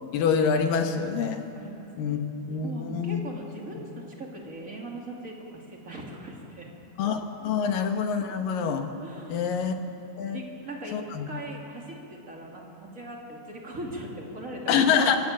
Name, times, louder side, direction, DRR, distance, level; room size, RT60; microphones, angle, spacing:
voice 1, 0.1-1.4 2.0-2.2 2.5-3.2 7.0-8.9 9.3-9.8 10.2-10.4 10.9-11.3 14.7-15.2, left 6 dB, 65° left, 6 dB, 2.7 m, -25 dB
voice 2, 1.5-2.2 2.6-6.7 7.4-7.5 9.0-9.5 10.3-11.0 11.3-15.2, right 1 dB, 25° right, -1 dB, 2.4 m, -39 dB
25.0 x 16.5 x 7.6 m, 2.9 s
omnidirectional pair, 4.7 m